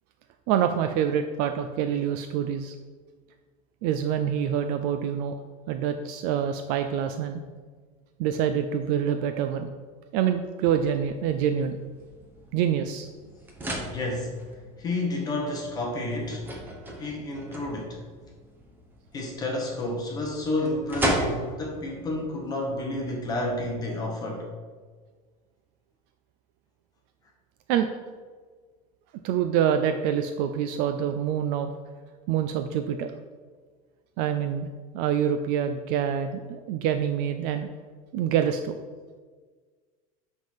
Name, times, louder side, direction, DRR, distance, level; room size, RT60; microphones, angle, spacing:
voice 1, 0.5-2.7 3.8-5.4 5.7-7.4 8.2-9.7 10.1-11.8 12.5-13.1 27.7-27.9 29.2-31.7 32.3-33.1 34.2-34.7 34.9-37.7 38.1-38.8, right 9 dB, 50° right, 7 dB, 0.4 m, -26 dB
sound 1, 10.8-23.7, right 1 dB, 10° right, 0.8 m, -36 dB
voice 2, 13.7-14.3 14.8-16.5 17.0-18.0 19.1-24.5, left 2 dB, 20° left, 0 dB, 0.9 m, -30 dB
7.7 x 3.6 x 5.6 m, 1.5 s
cardioid pair, 170°, 18 cm